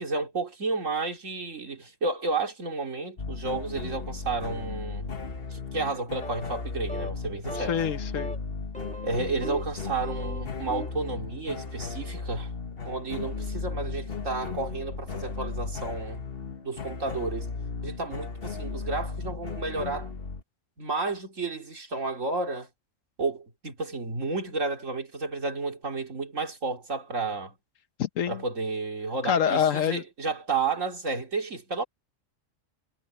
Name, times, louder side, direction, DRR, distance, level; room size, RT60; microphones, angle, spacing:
voice 1, 0.0-5.1 5.5-7.8 9.0-12.5 12.8-16.2 16.6-17.5 17.8-20.1 20.8-22.7 23.2-27.5 28.3-31.8, right 3 dB, 70° right, 3.3 m, -31 dB
sound 1, 3.2-20.4, left 4 dB, 50° left, 1.5 m, -36 dB
sound 2, 6.2-6.6 6.9-7.2 7.5-7.9 8.1-8.4 8.7-9.7 10.0-11.0, left 1 dB, 5° left, 2.3 m, -38 dB
voice 2, 7.6-8.3 28.0-28.4 29.2-30.0, left 8 dB, 75° left, 1.3 m, -26 dB
omnidirectional pair, 1.4 m